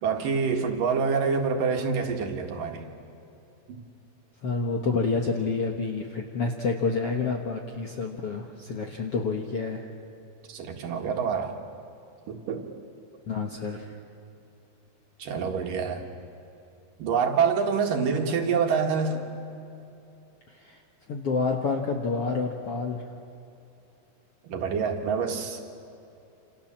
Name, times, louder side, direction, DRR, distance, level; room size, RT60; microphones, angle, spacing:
voice 1, 0.0-2.9 3.7-3.8 10.5-11.6 12.3-12.7 15.2-16.0 17.0-19.3 24.4-25.6, right 5 dB, 60° right, 3 dB, 3.2 m, -26 dB
voice 2, 4.4-9.8 13.3-13.9 20.6-20.8 21.1-23.1, left 4 dB, 55° left, 2 dB, 1.7 m, -28 dB
28.0 x 28.0 x 7.5 m, 2.8 s
omnidirectional pair, 4.6 m